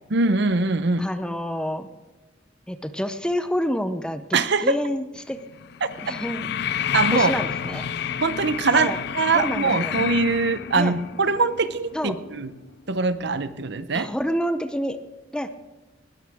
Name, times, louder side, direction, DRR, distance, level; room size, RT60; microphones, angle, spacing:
voice 1, 0.1-1.1 4.3-4.8 5.8-5.9 6.9-7.3 8.2-12.5 12.9-14.1, right 3 dB, 60° right, 13 dB, 0.8 m, -22 dB
voice 2, 1.0-1.9 2.7-5.4 6.0-6.5 7.1-7.9 8.7-9.0 9.4-9.9 10.7-11.0 11.9-12.1 13.9-15.0 15.3-15.5, equal, 5° left, 10 dB, 0.7 m, -28 dB
sound 1, 5.2-13.5 13.8-13.9, left 9 dB, 60° left, 0.5 m, -30 dB
20.0 x 13.0 x 3.6 m, 1.1 s
head